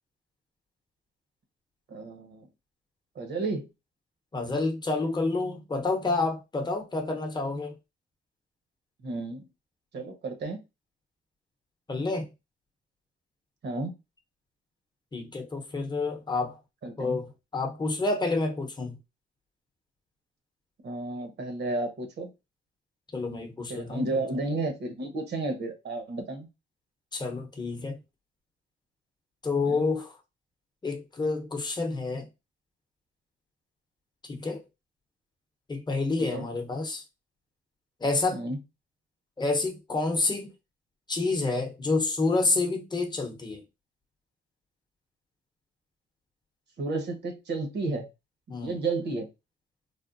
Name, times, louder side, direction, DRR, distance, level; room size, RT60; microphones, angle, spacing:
voice 1, 1.9-2.5 3.1-3.7 9.0-9.5 9.9-10.6 13.6-13.9 16.8-17.2 20.8-22.3 23.7-26.5 29.7-29.8 36.2-36.5 38.3-38.6 46.8-48.0 48.6-49.3, right 2 dB, 60° right, 1.0 m, -32 dB
voice 2, 4.3-7.7 11.9-12.3 15.1-16.6 17.0-19.0 23.1-24.0 27.1-28.0 29.4-30.2 30.8-32.3 34.2-34.6 35.7-37.0 38.0-38.4 39.4-40.5 41.1-43.6 48.5-48.8, left 3 dB, 20° left, 0.8 m, -29 dB
3.5 x 2.1 x 2.5 m
cardioid pair, 90°, 20 cm